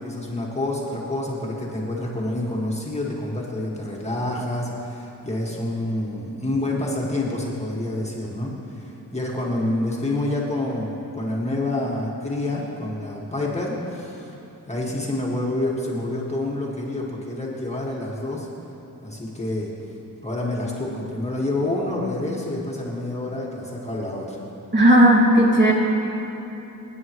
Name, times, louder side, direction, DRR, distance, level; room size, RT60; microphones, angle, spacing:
voice 1, 0.0-14.3 14.7-18.5 19.0-19.7 20.2-24.4, left 1 dB, 20° left, -4 dB, 1.9 m, -28 dB
voice 2, 24.7-25.7, right 1 dB, 30° right, -4 dB, 2.5 m, -14 dB
28.0 x 9.5 x 3.2 m, 3.0 s
wide cardioid pair, 120°, 36 cm